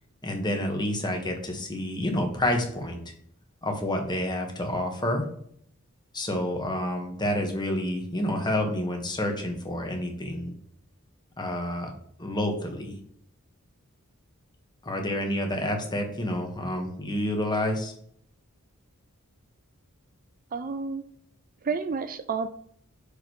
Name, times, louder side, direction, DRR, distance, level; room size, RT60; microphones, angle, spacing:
voice 1, 0.2-3.0 3.6-5.2 6.1-10.5 11.4-11.9 12.2-13.0 14.8-17.9, left 1 dB, 20° left, 3 dB, 1.6 m, -29 dB
voice 2, 20.5-21.0 21.6-22.5, right 5 dB, 40° right, 10 dB, 0.4 m, -30 dB
6.3 x 5.1 x 6.2 m, 0.65 s
head